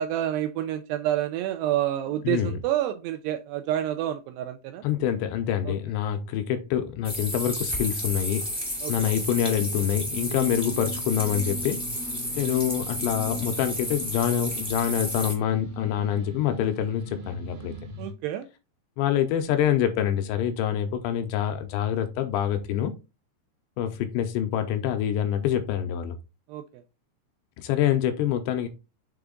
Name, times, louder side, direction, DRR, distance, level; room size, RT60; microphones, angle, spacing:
voice 1, 0.0-4.8 5.7-5.8 8.8-9.1 18.0-18.5 26.5-26.6, right 12 dB, 85° right, 2.4 m, -28 dB
voice 2, 2.2-2.6 4.8-8.5 8.9-11.8 12.4-17.7 19.0-22.9 23.8-26.2 27.6-28.7, left 10 dB, 85° left, 2.8 m, -26 dB
sound 1, 7.0-15.3, equal, 5° right, 0.6 m, -32 dB
sound 2, 10.1-18.1, right 1 dB, 65° right, 1.5 m, -40 dB
6.9 x 3.6 x 3.8 m
omnidirectional pair, 5.2 m